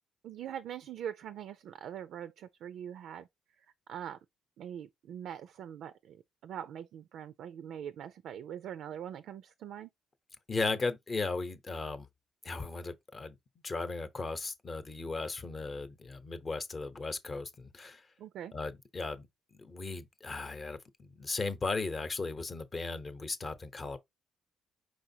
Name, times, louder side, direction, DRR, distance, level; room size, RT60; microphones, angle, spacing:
voice 1, 0.2-3.3 3.6-4.2 4.6-9.9 18.2-18.5, right 9 dB, 75° right, 0.4 m, -43 dB
voice 2, 10.5-12.1 12.4-13.4 13.6-18.0 18.5-24.0, left 3 dB, 35° left, 0.8 m, -36 dB
4.9 x 3.9 x 2.7 m
cardioid pair, 90°, 0 cm